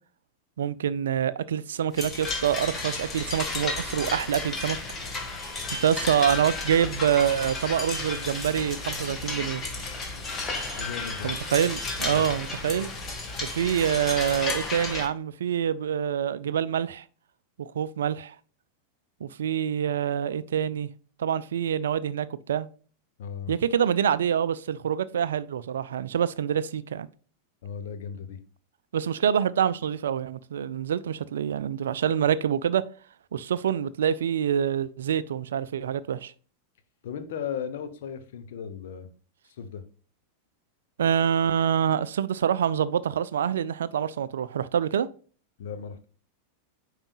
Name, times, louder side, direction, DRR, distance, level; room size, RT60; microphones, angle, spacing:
voice 1, 0.6-4.8 5.8-9.6 11.2-12.9 13.4-17.0 17.6-18.3 19.2-20.9 21.2-22.7 23.5-27.1 28.9-32.8 33.3-36.3 41.0-45.1, right 8 dB, 65° right, 0.4 m, -26 dB
sound 1, 1.9-15.1, left 3 dB, 20° left, 1.4 m, -33 dB
voice 2, 10.7-11.3 12.1-12.3 23.2-23.5 27.6-28.4 37.0-39.1 39.5-39.8 45.6-46.1, left 7 dB, 55° left, 0.9 m, -36 dB
8.7 x 4.9 x 2.3 m
figure-of-eight pair, 90°, 0 cm